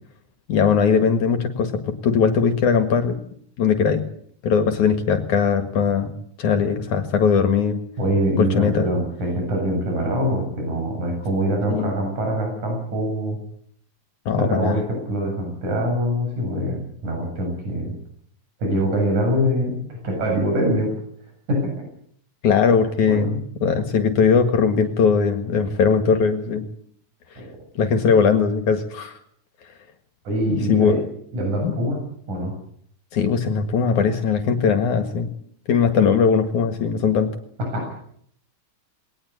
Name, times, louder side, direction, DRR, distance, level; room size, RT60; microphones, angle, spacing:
voice 1, 0.5-3.2 3.6-4.0 4.4-7.8 8.4-8.9 11.7-12.0 14.3-14.8 22.4-26.6 27.8-29.2 30.5-31.0 31.6-31.7 33.1-35.3 35.7-37.3, left 6 dB, 65° left, 7 dB, 3.1 m, -20 dB
voice 2, 8.0-13.4 14.3-17.9 18.6-20.9 21.5-21.7 23.1-23.4 27.4-27.5 30.3-31.0 31.3-32.0 32.3-32.5 37.7-38.0, equal, 60° right, 2 dB, 9.2 m, -24 dB
21.5 x 19.0 x 8.5 m, 0.64 s
omnidirectional pair, 3.9 m